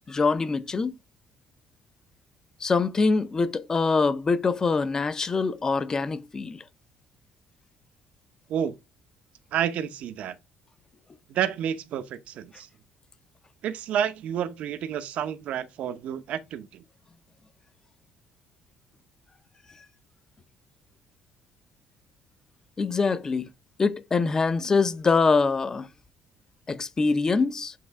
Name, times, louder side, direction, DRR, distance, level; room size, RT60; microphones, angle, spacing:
voice 1, 0.1-0.9 2.6-6.6 22.8-23.5 23.8-25.9 26.7-27.7, left 4 dB, 25° left, 0.7 m, -24 dB
voice 2, 9.5-10.3 11.3-12.7 13.6-16.8, right 9 dB, 65° right, 0.8 m, -30 dB
7.6 x 3.2 x 4.7 m
cardioid pair, 130°, 2 cm